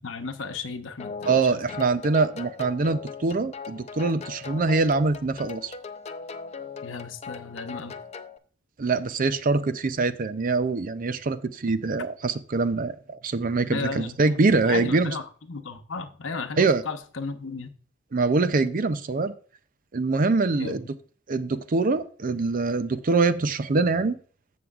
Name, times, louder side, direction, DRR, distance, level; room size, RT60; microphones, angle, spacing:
voice 1, 0.0-1.8 6.8-8.0 13.7-17.7 20.5-20.8, left 4 dB, 80° left, 0.9 m, -35 dB
sound 1, 1.0-8.4, left 4 dB, 35° left, 0.5 m, -39 dB
voice 2, 1.2-5.7 8.8-15.2 16.6-16.8 18.1-19.3 19.9-20.8 21.3-24.2, right 3 dB, 45° right, 0.5 m, -24 dB
15.0 x 6.3 x 2.4 m
head